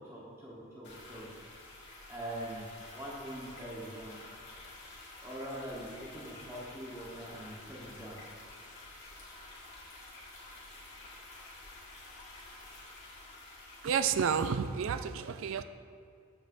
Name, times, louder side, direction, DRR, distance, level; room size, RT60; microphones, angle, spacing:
voice 1, 0.0-1.3 2.1-4.2 5.2-8.2, right 1 dB, 10° right, -8 dB, 1.1 m, -43 dB
sound 1, 0.8-14.5, left 2 dB, 55° left, 1.9 m, -50 dB
voice 2, 13.8-15.6, right 7 dB, 65° right, 11 dB, 0.3 m, -30 dB
14.0 x 5.2 x 2.6 m, 2.4 s
head